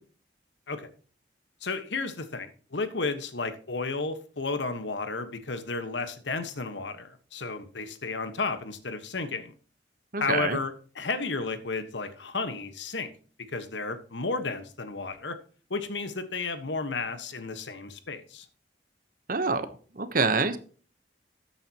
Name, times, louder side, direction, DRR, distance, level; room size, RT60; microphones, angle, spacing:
voice 1, 1.6-9.5 10.2-13.1 13.5-15.4 15.7-18.4, left 3 dB, 80° left, 1.4 m, -33 dB
voice 2, 10.1-10.6 19.3-19.7 20.0-20.6, right 4 dB, 50° right, 1.1 m, -26 dB
13.5 x 8.8 x 3.0 m
head